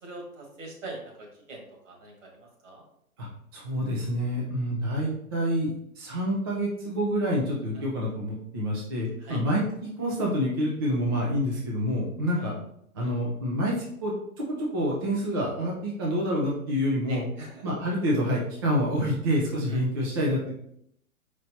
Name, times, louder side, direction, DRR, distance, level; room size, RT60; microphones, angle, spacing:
voice 1, 0.0-2.8 7.7-7.9 9.2-9.4 12.4-12.5 13.0-13.1 17.1-17.6 19.7-19.8, right 2 dB, 55° right, 0 dB, 1.8 m, -43 dB
voice 2, 3.5-9.6 10.0-12.5 12.9-13.7 14.0-14.1 14.7-17.2 17.6-20.5, equal, 20° right, -5 dB, 0.4 m, -27 dB
4.4 x 4.2 x 2.7 m, 0.74 s
hypercardioid pair, 130°, 44 cm